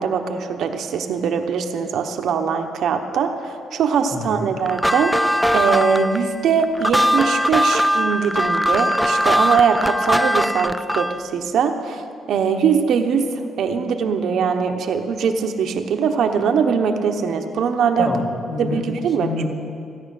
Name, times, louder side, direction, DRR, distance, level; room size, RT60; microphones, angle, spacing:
voice 1, 0.0-12.0 12.3-18.1 18.6-19.3, right 6 dB, 70° right, 5 dB, 1.0 m, -21 dB
voice 2, 4.1-4.5 18.0-18.9 19.2-19.5, left 2 dB, 30° left, 0 dB, 2.4 m, -27 dB
sound 1, 4.7-11.2, equal, ahead, 0.3 m, -20 dB
16.0 x 9.9 x 6.6 m, 2.3 s
cardioid pair, 90°, 0 cm